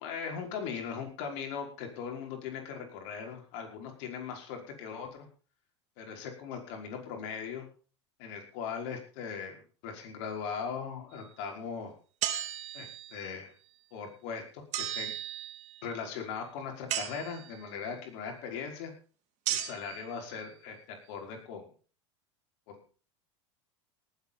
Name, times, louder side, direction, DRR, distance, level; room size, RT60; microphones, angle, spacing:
voice 1, 0.0-5.3 6.0-7.7 8.2-11.9 12.7-13.5 13.9-15.2 15.8-18.9 19.5-21.7 22.7-22.8, left 6 dB, 60° left, 3 dB, 5.1 m, -39 dB
sound 1, 12.2-13.2 14.7-15.9 16.9-17.7 19.5-20.0, right 12 dB, 50° right, 2.4 m, -35 dB
18.5 x 8.5 x 5.5 m, 0.40 s
hypercardioid pair, 100°, 15 cm